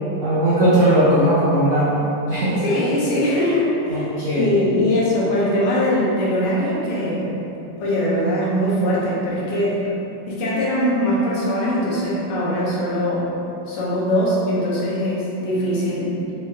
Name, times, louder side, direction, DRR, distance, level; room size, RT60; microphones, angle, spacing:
voice 1, 0.2-2.0 2.3-2.6 3.9-4.5, right 1 dB, 85° right, -11 dB, 0.6 m, -18 dB
voice 2, 2.6-7.4 7.8-9.8 10.3-13.3 13.7-16.2, left 1 dB, 85° left, -6 dB, 1.8 m, -21 dB
4.6 x 2.9 x 3.0 m, 3.0 s
omnidirectional pair, 2.4 m